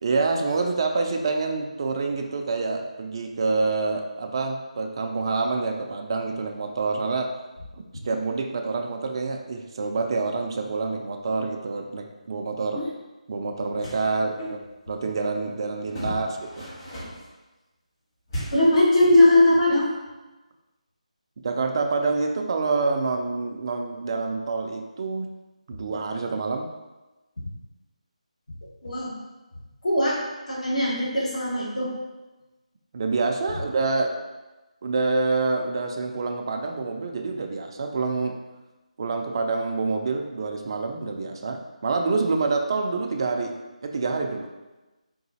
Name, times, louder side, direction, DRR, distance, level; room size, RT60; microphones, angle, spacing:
voice 1, 0.0-7.3 7.7-12.8 13.3-14.6 14.9-16.7 21.4-25.3 25.7-26.7 32.9-34.2 34.8-38.4 39.0-43.6 43.8-44.5, right 3 dB, 35° right, 3 dB, 0.3 m, -27 dB
sound 1, 13.6-14.1 15.9-17.3 18.3-18.8, equal, 30° left, 1.2 m, -36 dB
voice 2, 18.5-19.9 28.8-29.2 29.8-30.1 30.5-31.9, left 1 dB, 65° left, -6 dB, 1.2 m, -20 dB
3.9 x 2.4 x 2.7 m, 1.1 s
figure-of-eight pair, 160°, 4 cm